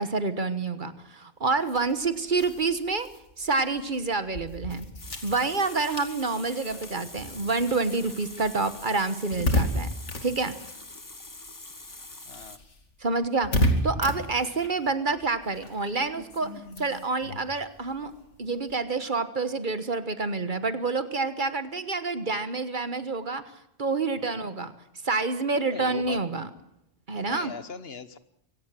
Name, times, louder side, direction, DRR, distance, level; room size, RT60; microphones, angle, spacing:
voice 1, 0.0-3.1 3.4-4.9 5.2-9.9 10.2-10.6 13.0-18.1 18.4-23.4 23.8-24.7 25.0-26.5 27.1-27.5, right 3 dB, 45° right, 12 dB, 1.4 m, -28 dB
sound 1, 1.6-11.5 11.8-18.7, left 1 dB, 75° left, 2.9 m, -33 dB
Water tap faucet, 5.0-12.6, left 2 dB, 15° left, 1.1 m, -44 dB
voice 2, 12.2-12.6 24.2-24.5 25.7-26.2 27.1-28.2, left 5 dB, 60° left, 14 dB, 1.3 m, -40 dB
24.0 x 17.0 x 7.6 m, 0.80 s
omnidirectional pair, 1.2 m